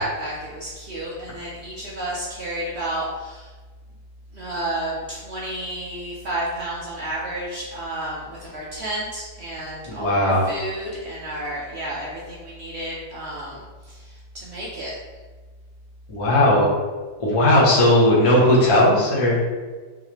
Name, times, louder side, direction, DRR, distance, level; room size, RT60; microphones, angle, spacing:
voice 1, 0.0-3.5 4.3-15.0, right 1 dB, 60° right, -5 dB, 0.7 m, -31 dB
voice 2, 9.9-10.5 16.1-16.7 17.2-19.4, left 1 dB, 25° left, -6 dB, 0.7 m, -17 dB
3.6 x 3.1 x 3.0 m, 1.4 s
omnidirectional pair, 1.8 m